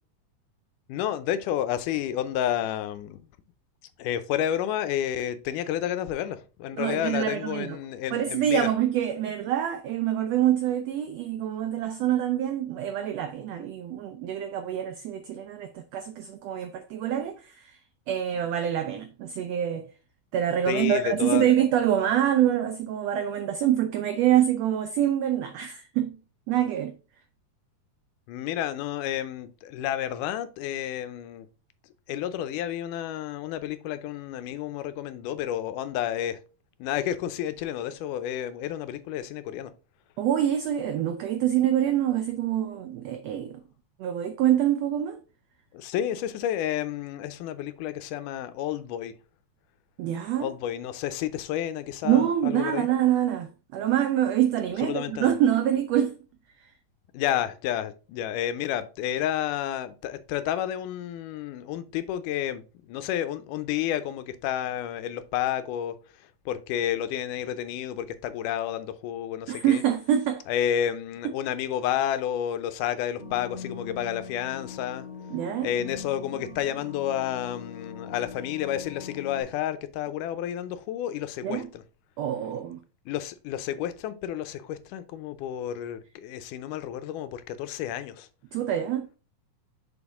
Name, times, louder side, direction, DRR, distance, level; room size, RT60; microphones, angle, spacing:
voice 1, 0.9-3.2 4.0-8.7 20.7-21.5 28.3-31.5 32.1-36.4 36.8-39.7 45.7-49.1 50.4-52.9 54.8-55.3 57.1-66.0 66.5-69.8 70.5-75.1 75.6-81.8 83.1-88.3, left 11 dB, 90° left, 2.2 m, -30 dB
voice 2, 6.7-7.8 8.1-17.8 18.1-19.9 20.3-26.2 26.5-26.9 40.2-43.6 44.0-45.2 50.0-50.5 52.0-56.1 69.5-70.4 75.3-75.7 81.4-81.7 82.2-82.8 88.5-89.1, right 11 dB, 80° right, 1.5 m, -25 dB
sound 1, 73.2-79.4, left 5 dB, 30° left, 1.6 m, -41 dB
7.1 x 4.3 x 3.5 m
omnidirectional pair, 3.6 m